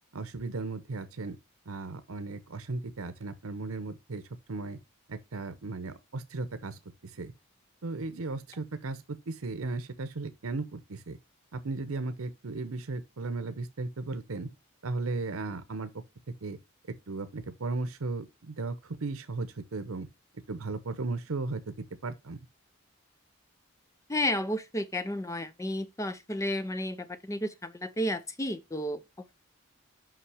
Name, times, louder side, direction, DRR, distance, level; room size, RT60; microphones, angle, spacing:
voice 1, 0.1-1.4 1.7-4.2 4.5-4.8 5.1-7.3 7.8-11.2 11.5-14.5 14.8-15.9 16.4-16.6 17.1-20.1 20.5-22.4, right 3 dB, 85° right, 0.8 m, -36 dB
voice 2, 24.1-29.0, left 1 dB, 15° left, 0.6 m, -32 dB
5.7 x 5.4 x 4.9 m
head